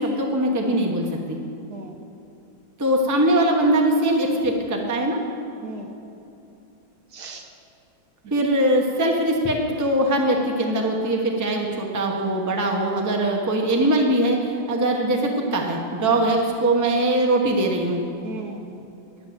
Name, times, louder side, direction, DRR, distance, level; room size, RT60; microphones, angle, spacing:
voice 1, 0.0-1.4 2.8-5.2 8.3-14.4 14.7-18.0, right 1 dB, 15° right, 1 dB, 0.7 m, -21 dB
voice 2, 5.6-6.0 7.1-7.5 8.4-8.5 16.2-16.3 18.2-19.1, right 3 dB, 65° right, 3 dB, 1.3 m, -37 dB
11.5 x 5.8 x 7.8 m, 2.7 s
omnidirectional pair, 2.0 m